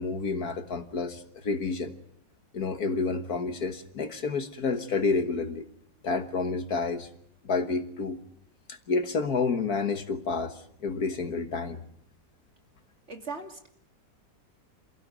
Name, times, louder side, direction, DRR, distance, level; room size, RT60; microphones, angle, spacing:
voice 1, 0.0-1.9 2.5-5.7 6.0-7.1 7.5-8.2 8.7-11.8, left 4 dB, 55° left, 8 dB, 1.8 m, -29 dB
voice 2, 13.1-13.7, right 4 dB, 35° right, 4 dB, 3.0 m, -38 dB
28.5 x 16.0 x 9.3 m, 0.70 s
omnidirectional pair, 2.0 m